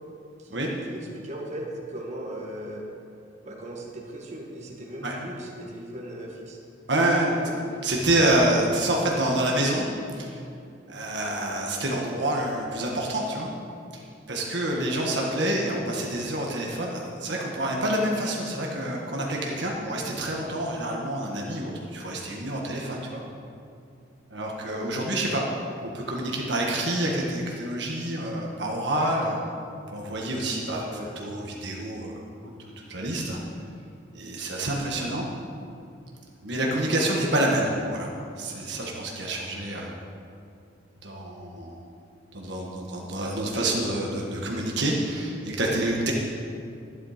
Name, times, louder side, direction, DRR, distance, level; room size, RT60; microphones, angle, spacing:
voice 1, 0.4-2.8 3.4-6.6 7.2-7.5 15.2-15.5 24.6-25.0 30.8-31.1, right 1 dB, 35° right, -2 dB, 1.7 m, -38 dB
voice 2, 6.9-7.3 7.8-9.9 10.1-10.4 10.9-13.5 13.9-14.0 14.3-23.2 24.3-25.7 25.9-29.4 29.9-30.9 31.1-32.5 32.9-33.4 34.1-35.2 36.4-39.9 41.0-41.8 42.3-46.1, right 1 dB, 60° right, -1 dB, 1.6 m, -27 dB
12.5 x 10.5 x 5.1 m, 2.5 s
head